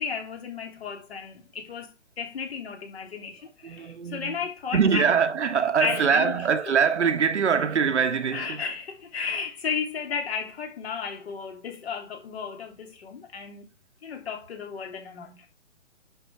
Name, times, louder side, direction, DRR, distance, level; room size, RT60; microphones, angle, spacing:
voice 1, 0.0-5.1 5.8-6.3 8.3-13.7 14.0-15.5, left 6 dB, 50° left, 3.1 m, -33 dB
voice 2, 3.6-4.4 4.7-8.6, right 6 dB, 60° right, 1.2 m, -23 dB
10.5 x 6.3 x 3.5 m
figure-of-eight pair, 130°, 39 cm